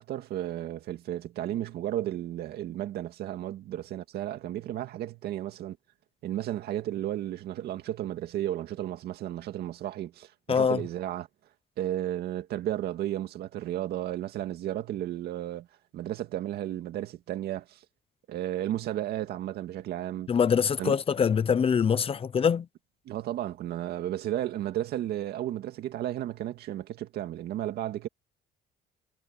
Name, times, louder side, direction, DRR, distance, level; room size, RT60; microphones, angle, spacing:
voice 1, 0.0-5.8 6.2-11.3 11.8-15.7 15.9-17.8 18.3-20.3 20.8-21.0 23.1-28.1, right 12 dB, 70° right, 2.1 m, -33 dB
voice 2, 10.5-10.8 20.3-22.7, left 7 dB, 35° left, 0.8 m, -24 dB
cardioid pair, 110°, 17 cm